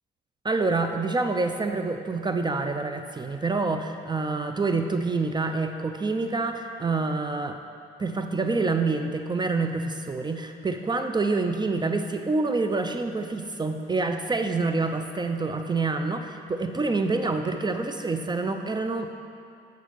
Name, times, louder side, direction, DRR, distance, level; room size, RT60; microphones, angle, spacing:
voice 1, 0.4-7.6 8.0-19.1, right 3 dB, 20° right, 6 dB, 0.4 m, -27 dB
9.0 x 3.9 x 6.7 m, 2.4 s
cardioid pair, 90°, 20 cm